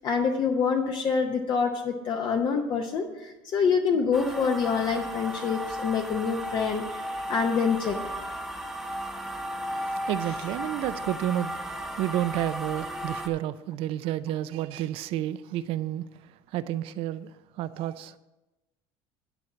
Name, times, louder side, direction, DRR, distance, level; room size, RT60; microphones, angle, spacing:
voice 1, 0.0-7.0 7.3-7.9, left 5 dB, 45° left, 0.8 m, -26 dB
sound 1, 4.1-13.3, equal, ahead, 1.0 m, -35 dB
voice 2, 10.1-11.5 12.0-16.1 16.5-17.3 17.6-18.1, right 13 dB, 60° right, 0.5 m, -30 dB
10.5 x 4.5 x 7.2 m
cardioid pair, 130°, 11 cm